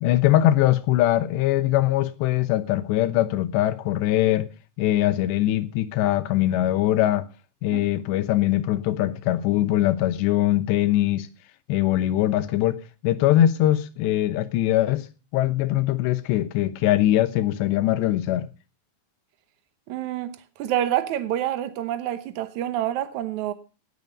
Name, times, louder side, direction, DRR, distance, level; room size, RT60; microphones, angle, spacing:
voice 1, 0.0-4.5 4.8-7.2 7.6-11.3 11.7-15.1 15.3-18.5, left 13 dB, 85° left, 3.2 m, -22 dB
voice 2, 19.9-23.5, right 12 dB, 80° right, 1.7 m, -27 dB
18.0 x 8.1 x 5.3 m
omnidirectional pair, 4.9 m